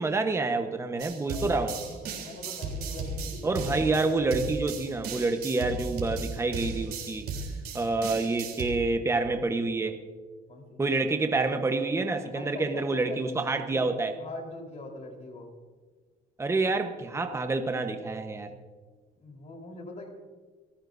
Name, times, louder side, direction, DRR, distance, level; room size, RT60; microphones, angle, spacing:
voice 1, 0.0-1.7 3.4-7.2 7.7-10.0 10.8-14.1 16.4-18.5, right 3 dB, 15° right, 6 dB, 1.1 m, -28 dB
sound 1, 1.0-8.7, right 4 dB, 70° right, 3.6 m, -36 dB
voice 2, 1.2-4.6 9.3-9.6 10.5-10.8 12.3-13.2 13.7-13.9 14.2-15.5 19.2-20.1, left 2 dB, 40° left, 1 dB, 4.1 m, -42 dB
28.0 x 14.5 x 2.7 m, 1.4 s
cardioid pair, 110°, 17 cm